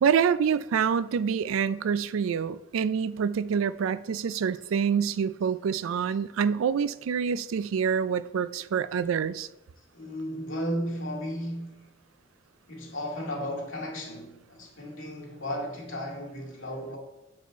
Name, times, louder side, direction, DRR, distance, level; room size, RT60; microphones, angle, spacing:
voice 1, 0.0-9.5, right 7 dB, 85° right, 0.3 m, -26 dB
voice 2, 9.9-11.9 12.7-17.0, equal, 75° left, 2.0 m, -34 dB
7.3 x 4.9 x 4.5 m
head